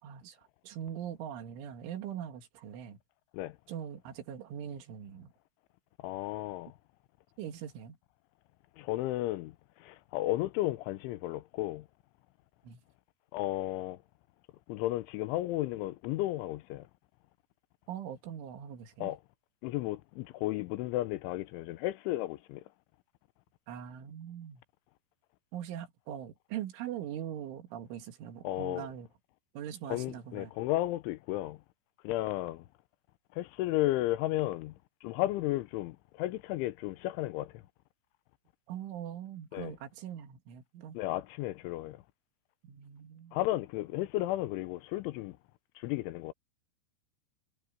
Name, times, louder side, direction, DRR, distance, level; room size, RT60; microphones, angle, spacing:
voice 1, 0.0-3.0 3.7-5.3 7.4-8.0 12.6-12.8 17.9-19.1 23.7-24.6 25.5-29.1 29.5-30.5 38.7-41.0 42.6-43.4, right 10 dB, 90° right, 4.6 m, -42 dB
voice 2, 6.0-6.7 8.8-11.9 13.3-14.0 14.7-16.9 19.0-19.2 19.6-22.6 28.4-28.9 29.9-31.6 32.0-32.7 33.4-34.7 35.0-37.6 39.5-39.7 40.9-42.0 43.3-45.4 45.8-46.3, left 16 dB, 85° left, 3.3 m, -33 dB
omnidirectional pair, 5.3 m